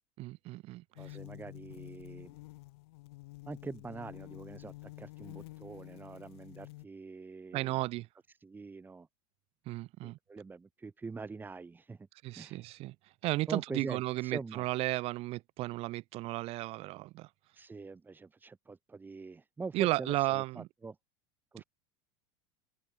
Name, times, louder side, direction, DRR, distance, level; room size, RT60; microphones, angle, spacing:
voice 1, 0.2-1.2 7.5-8.1 9.7-10.2 12.2-12.9 13.2-17.3 19.7-20.6, right 18 dB, 50° right, 2.2 m, -34 dB
sound 1, 1.0-6.9, left 22 dB, 75° left, 4.6 m, -49 dB
voice 2, 1.0-2.4 3.5-7.8 8.4-9.1 10.0-12.1 12.3-12.7 13.5-14.7 17.5-21.0 21.5-21.6, right 4 dB, 15° right, 5.8 m, -44 dB
supercardioid pair, 130°, 13 cm